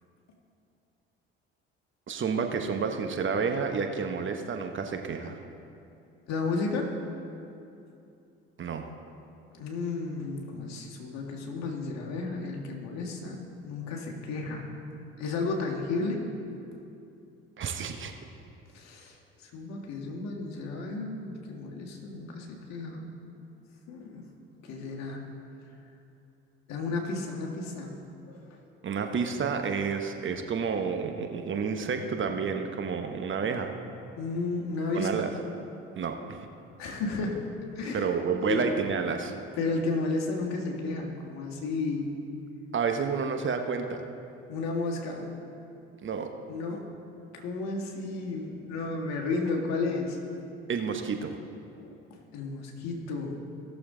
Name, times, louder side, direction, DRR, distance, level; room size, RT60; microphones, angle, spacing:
voice 1, 2.1-5.4 8.6-8.9 17.6-18.1 28.8-33.7 34.9-35.3 36.0-36.5 37.9-39.3 42.7-44.0 46.0-46.3 50.7-51.3, right 5 dB, 40° right, 5 dB, 1.0 m, -30 dB
voice 2, 6.3-7.0 9.5-13.4 13.6-14.8 15.2-16.2 18.7-19.2 19.4-23.1 23.9-24.3 24.6-25.2 26.7-28.0 28.2-28.6 34.2-35.3 36.8-37.5 37.8-38.1 38.4-38.7 39.6-42.1 44.5-45.3 46.5-46.9 47.3-50.2 51.7-53.4, left 3 dB, 65° left, 0 dB, 1.8 m, -33 dB
17.0 x 6.8 x 3.8 m, 2.7 s
hypercardioid pair, 60°, 30 cm